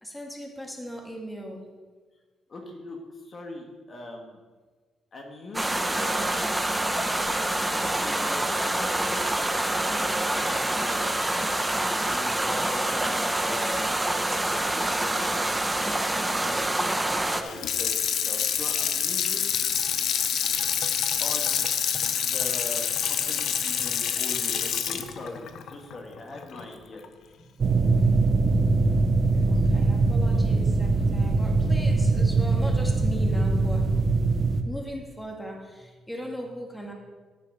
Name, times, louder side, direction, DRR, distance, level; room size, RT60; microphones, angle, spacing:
voice 1, 0.0-1.7 27.3-27.5 29.3-34.1 34.7-36.9, equal, 5° left, 0 dB, 1.7 m, -38 dB
voice 2, 2.5-3.0 3.2-4.4 5.1-6.5 7.5-9.3 9.7-11.0 12.1-15.6 16.2-19.6 21.2-21.7 22.1-27.0, left 2 dB, 40° left, 1 dB, 1.7 m, -41 dB
sound 1, 5.5-17.4, right 1 dB, 10° right, 0.9 m, -26 dB
Water tap faucet / Sink (filling or washing), 17.4-26.6 27.0-27.1, left 8 dB, 70° left, 0.7 m, -27 dB
sound 2, 27.6-34.6, right 3 dB, 45° right, 1.0 m, -22 dB
10.0 x 6.5 x 5.4 m, 1.4 s
cardioid pair, 90°, 0 cm